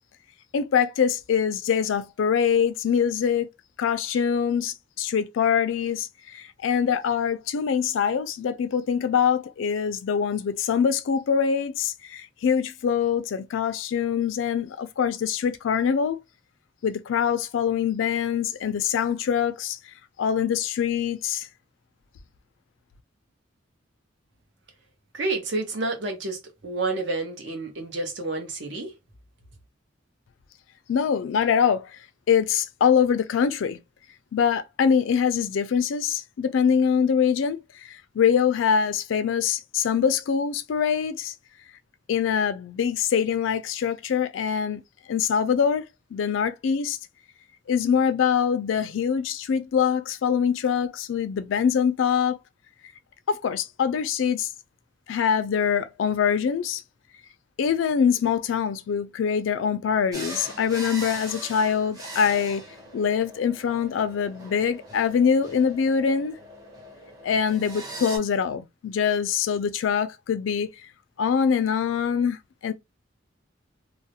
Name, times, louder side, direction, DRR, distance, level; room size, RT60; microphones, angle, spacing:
voice 1, 0.5-3.5 3.8-16.2 16.8-19.8 20.2-21.5 30.9-31.9 32.3-33.8 34.3-41.3 42.1-44.8 45.1-45.8 46.1-47.0 47.7-52.4 53.3-54.5 55.1-56.8 57.6-62.6 62.9-66.4 67.2-70.7 71.2-72.4 72.6-72.7, left 7 dB, 85° left, 0.3 m, -24 dB
voice 2, 25.1-28.9, right 3 dB, 70° right, 0.8 m, -29 dB
sound 1, 60.1-68.2, right 2 dB, 20° right, 0.7 m, -40 dB
2.3 x 2.0 x 2.7 m
head